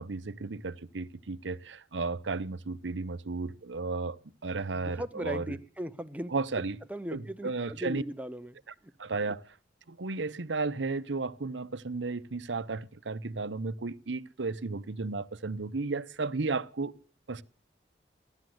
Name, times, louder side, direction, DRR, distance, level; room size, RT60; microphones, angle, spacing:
voice 1, 0.0-4.2 4.4-5.6 6.3-6.8 7.1-8.0 9.0-9.6 9.9-16.9 17.3-17.4, right 3 dB, 85° right, 0.8 m, -34 dB
voice 2, 4.7-6.3 6.9-8.6 8.8-8.9, equal, 10° right, 0.8 m, -38 dB
15.5 x 11.5 x 7.9 m
head